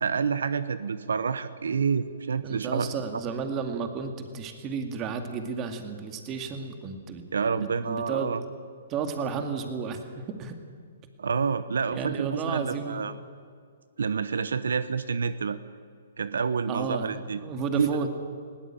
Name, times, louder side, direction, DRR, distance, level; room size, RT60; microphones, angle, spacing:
voice 1, 0.0-2.9 7.3-8.4 11.2-13.1 14.0-15.6 16.2-17.4 17.7-17.9, right 6 dB, 85° right, 14 dB, 0.9 m, -28 dB
voice 2, 2.4-7.2 7.5-8.3 8.9-10.6 11.9-13.1 16.7-18.1, right 5 dB, 25° right, 6 dB, 2.2 m, -32 dB
20.0 x 17.5 x 8.9 m, 2.1 s
hypercardioid pair, 145°, 0 cm